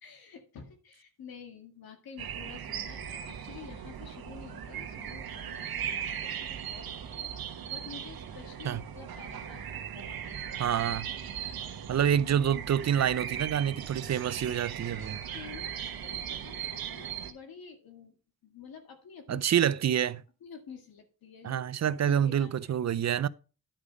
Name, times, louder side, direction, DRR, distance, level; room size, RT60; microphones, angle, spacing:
voice 1, 0.0-10.7 11.3-11.4 15.3-18.2 18.4-19.4 20.4-22.7, left 6 dB, 80° left, 1.9 m, -50 dB
sound 1, 2.2-17.3, right 8 dB, 85° right, 1.2 m, -38 dB
voice 2, 10.6-11.1 11.9-15.2 19.3-20.2 21.4-23.3, right 9 dB, 50° right, 0.5 m, -27 dB
10.5 x 5.0 x 5.2 m
cardioid pair, 80°, 36 cm